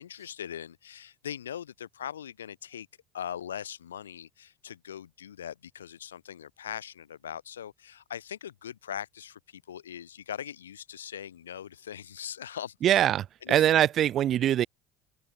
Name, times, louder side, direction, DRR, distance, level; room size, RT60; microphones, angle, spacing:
voice 1, 0.0-2.9 3.1-13.0 13.4-13.7, left 9 dB, 80° left, 4.9 m, -40 dB
voice 2, 12.8-14.7, right 11 dB, 45° right, 1.0 m, -23 dB
figure-of-eight pair, 60°, 0 cm